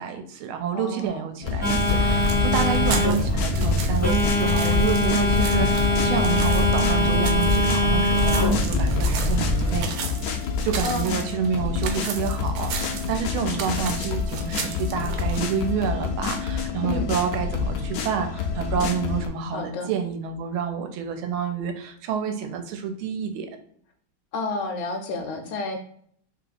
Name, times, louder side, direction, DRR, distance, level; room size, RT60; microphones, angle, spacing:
voice 1, 0.0-9.9 10.6-23.5, right 7 dB, 90° right, 6 dB, 1.5 m, -29 dB
voice 2, 0.7-1.2 10.8-11.2 16.8-17.1 19.5-19.9 24.3-25.8, left 2 dB, 75° left, 4 dB, 1.1 m, -30 dB
sound 1, 1.4-19.3, left 5 dB, 90° left, 0.8 m, -28 dB
Telephone, 1.6-9.8, left 1 dB, 25° left, 0.3 m, -22 dB
sound 2, 1.8-15.7, right 5 dB, 70° right, 1.3 m, -35 dB
3.4 x 2.9 x 3.9 m, 0.63 s
omnidirectional pair, 2.3 m